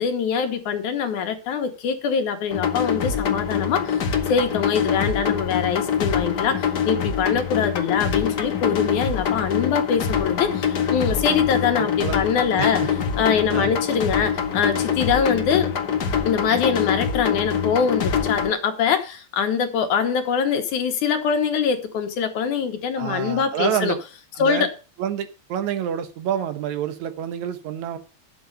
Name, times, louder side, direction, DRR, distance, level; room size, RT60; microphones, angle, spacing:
voice 1, 0.0-4.0 4.3-12.9 13.2-15.7 16.3-24.0 24.4-24.7, left 6 dB, 90° left, 2.8 m, -23 dB
sound 1, 2.5-18.5, left 7 dB, 55° left, 1.3 m, -24 dB
voice 2, 12.6-12.9 13.5-13.8 23.0-24.0 24.4-24.7 25.0-28.0, right 9 dB, 75° right, 2.5 m, -27 dB
11.0 x 7.8 x 5.5 m
omnidirectional pair, 3.3 m